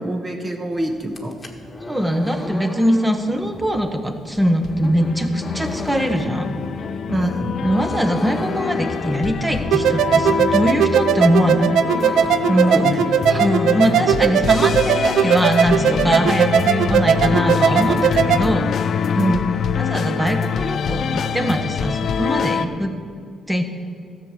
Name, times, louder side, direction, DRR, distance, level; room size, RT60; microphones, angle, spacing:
voice 1, 0.0-1.3 7.1-7.6 12.5-13.4 19.2-19.6, right 1 dB, 25° right, 3 dB, 1.4 m, -23 dB
sound 1, 1.0-15.1 15.4-16.4 16.7-18.1, left 1 dB, 25° left, 1.5 m, -34 dB
voice 2, 1.9-6.5 7.6-11.7 13.4-18.7 19.8-22.9 23.5-23.6, equal, 10° right, 5 dB, 1.2 m, -21 dB
sound 2, 4.3-22.7, left 7 dB, 60° left, 0.5 m, -25 dB
sound 3, 9.7-18.4, right 9 dB, 80° right, 0.4 m, -18 dB
13.5 x 7.3 x 6.6 m, 2.4 s
cardioid pair, 90°, 0 cm